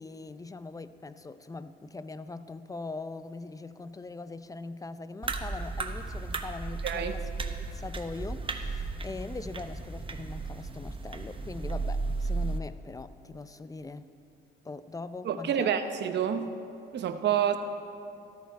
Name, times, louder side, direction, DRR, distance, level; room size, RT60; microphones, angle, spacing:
voice 1, 0.0-7.3 7.7-14.1 14.6-15.7, left 3 dB, 15° left, 13 dB, 0.5 m, -41 dB
sound 1, 5.2-12.6, right 3 dB, 25° right, 0.9 m, -34 dB
voice 2, 15.2-16.5 16.9-17.6, right 9 dB, 60° right, 8 dB, 0.8 m, -28 dB
13.5 x 13.0 x 4.5 m, 2.5 s
cardioid pair, 90°, 20 cm